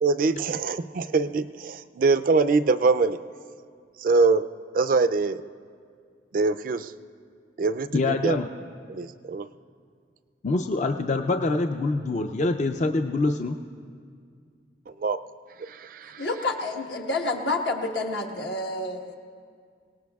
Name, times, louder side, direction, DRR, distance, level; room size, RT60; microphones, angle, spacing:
voice 1, 0.0-3.2 4.0-4.5 4.7-5.4 6.3-6.9 7.6-8.4 8.9-9.5 15.0-15.2 15.7-16.2, right 4 dB, 50° right, 11 dB, 0.3 m, -23 dB
voice 2, 7.9-8.5 10.4-13.6, left 3 dB, 40° left, 6 dB, 0.4 m, -25 dB
voice 3, 16.2-19.1, left 2 dB, 75° left, 2 dB, 1.3 m, -29 dB
24.5 x 18.5 x 2.3 m, 2.1 s
head